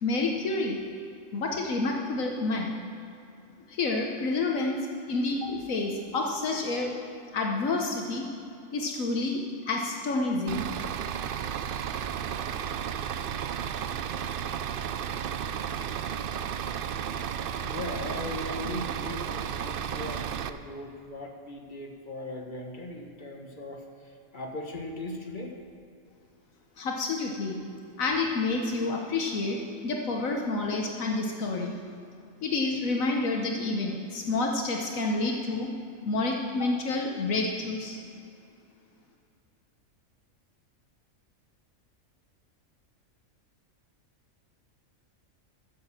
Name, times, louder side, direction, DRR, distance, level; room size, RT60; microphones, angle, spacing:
voice 1, 0.0-0.8 1.3-2.7 3.7-4.8 5.1-6.9 7.3-8.2 8.7-10.7 26.8-27.6 28.0-29.6 29.8-31.7 32.4-35.7 36.0-38.0, left 3 dB, 75° left, 1 dB, 1.4 m, -29 dB
Bus / Idling, 10.5-20.5, right 8 dB, 70° right, 0.5 m, -33 dB
voice 2, 17.6-25.5, left 2 dB, 35° left, 2 dB, 1.3 m, -39 dB
13.0 x 7.5 x 7.1 m, 2.6 s
omnidirectional pair, 1.4 m